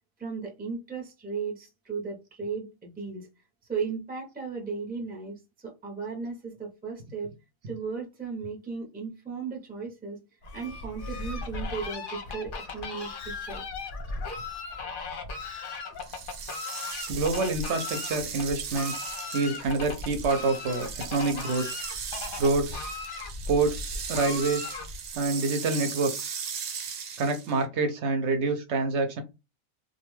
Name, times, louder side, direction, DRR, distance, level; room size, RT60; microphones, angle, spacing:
voice 1, 0.2-3.3 3.7-7.3 7.7-10.2 10.5-13.6, right 5 dB, 10° right, 0.5 m, -36 dB
Fowl, 10.4-25.2, left 3 dB, 50° left, 0.7 m, -37 dB
sound 1, 16.0-27.6, right 7 dB, 90° right, 1.0 m, -38 dB
voice 2, 17.1-19.0 19.3-21.7 22.4-22.9 23.5-24.7 25.1-26.4 27.2-29.2, right 3 dB, 65° right, 0.8 m, -27 dB
2.5 x 2.2 x 3.1 m
omnidirectional pair, 1.3 m